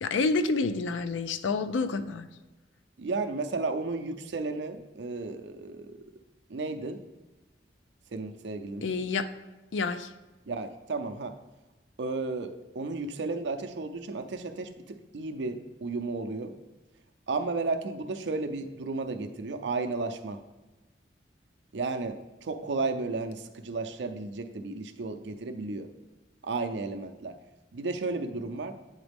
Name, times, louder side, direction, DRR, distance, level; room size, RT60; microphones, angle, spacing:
voice 1, 0.0-2.3 8.8-9.3 9.7-10.1, left 4 dB, 85° left, 11 dB, 0.4 m, -28 dB
voice 2, 3.0-6.0 6.5-7.0 8.1-8.9 10.5-11.3 12.0-16.5 17.3-20.4 21.7-25.9 26.4-27.3 27.7-28.8, right 3 dB, 75° right, 7 dB, 0.5 m, -33 dB
8.9 x 4.0 x 3.5 m, 1.1 s
head